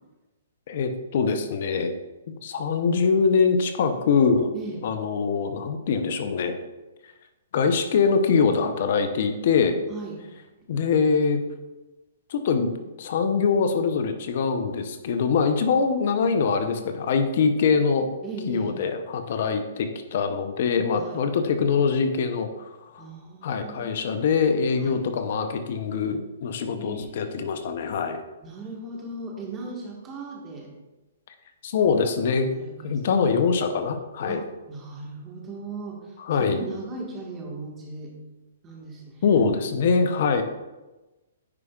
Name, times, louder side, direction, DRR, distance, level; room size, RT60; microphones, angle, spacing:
voice 1, 0.7-1.9 2.4-4.5 4.8-6.6 7.5-9.8 10.7-11.4 12.3-12.7 13.0-18.1 18.5-23.0 23.4-28.2 31.6-32.5 32.8-34.4 36.3-36.6 39.2-40.4, left 5 dB, 55° left, 8 dB, 0.7 m, -23 dB
voice 2, 9.9-10.2 18.2-18.8 20.9-21.3 23.0-24.1 24.8-25.0 26.7-27.4 28.4-30.7 32.5-33.0 34.3-38.1 38.6-39.4, right 3 dB, 20° right, -1 dB, 1.5 m, -38 dB
9.7 x 4.8 x 2.4 m, 1.1 s
hypercardioid pair, 140°, 0 cm